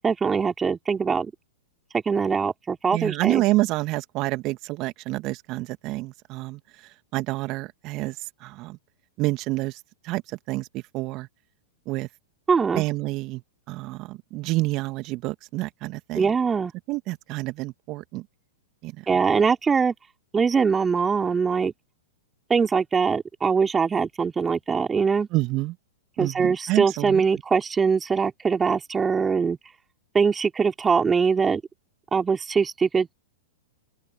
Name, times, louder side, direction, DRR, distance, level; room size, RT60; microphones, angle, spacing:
voice 1, 0.0-1.3 1.9-3.4 12.5-12.8 16.1-16.7 19.1-19.9 20.3-21.7 22.5-25.3 26.2-29.6 30.1-31.6 32.1-33.1, right 5 dB, 15° right, 3.2 m, -22 dB
voice 2, 2.9-6.6 7.1-8.2 8.4-8.8 9.2-9.8 10.0-11.3 11.9-12.1 12.8-13.4 13.7-16.3 16.9-18.3 18.8-19.0 25.3-25.8 26.2-27.2, right 20 dB, 40° right, 2.1 m, -28 dB
open air
hypercardioid pair, 105°, 0 cm